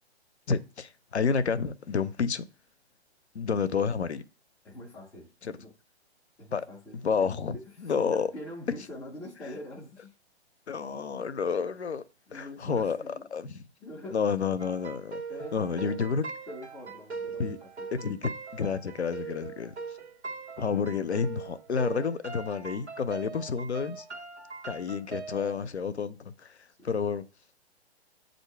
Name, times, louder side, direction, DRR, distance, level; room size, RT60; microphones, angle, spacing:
voice 1, 0.5-2.4 3.3-4.2 5.4-5.5 6.5-6.6 7.0-8.3 10.7-12.0 12.3-13.6 14.1-15.2 15.5-16.2 17.4-17.6 17.9-19.7 20.6-24.0 24.7-26.5 26.8-27.2, left 6 dB, 80° left, 0.6 m, -30 dB
voice 2, 4.6-5.3 5.6-5.7 6.4-10.1 11.6-11.7 12.3-13.3 13.8-14.2 15.3-16.0 16.5-17.9 26.8-26.9, left 1 dB, 5° left, 0.3 m, -44 dB
sound 1, 14.6-25.6, right 4 dB, 90° right, 1.3 m, -41 dB
7.9 x 2.7 x 4.4 m
figure-of-eight pair, 120°, 33 cm